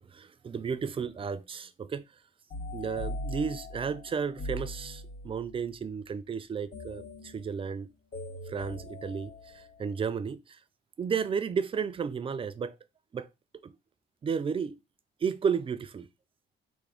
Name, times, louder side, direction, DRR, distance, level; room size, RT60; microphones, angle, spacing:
voice 1, 0.0-2.1 2.7-7.9 8.5-10.6 11.0-12.8 13.1-13.3 13.6-13.7 14.2-14.8 15.2-16.1, right 6 dB, 25° right, 0.3 m, -33 dB
sound 1, 2.5-5.5 6.7-10.0, left 1 dB, 70° left, 2.1 m, -41 dB
3.5 x 2.1 x 3.4 m
cardioid pair, 90°, 20 cm